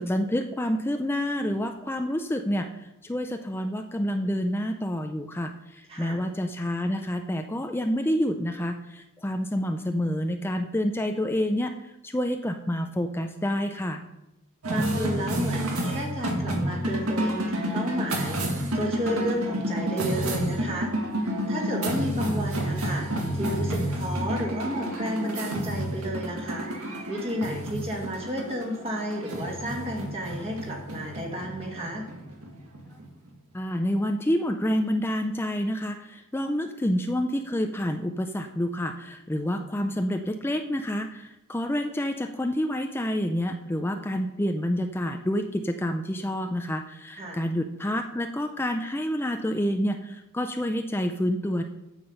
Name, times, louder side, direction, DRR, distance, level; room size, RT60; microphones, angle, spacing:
voice 1, 0.0-14.0 33.5-51.6, equal, 10° left, 6 dB, 0.4 m, -28 dB
voice 2, 5.9-6.2 14.7-20.9 21.5-32.1 47.2-47.4, equal, 25° right, -1 dB, 1.9 m, -32 dB
sound 1, 14.6-33.3, right 1 dB, 80° right, 1.9 m, -30 dB
8.7 x 7.5 x 5.4 m, 0.90 s
head